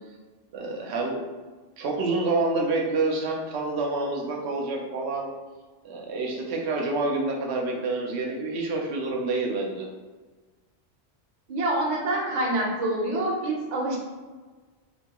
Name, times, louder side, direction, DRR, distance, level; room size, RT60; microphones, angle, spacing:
voice 1, 0.5-1.2 1.8-5.3 5.8-9.9, right 3 dB, 85° right, 0 dB, 0.8 m, -28 dB
voice 2, 11.5-14.0, right 1 dB, 45° right, -2 dB, 0.6 m, -26 dB
2.8 x 2.2 x 2.9 m, 1.4 s
omnidirectional pair, 1.1 m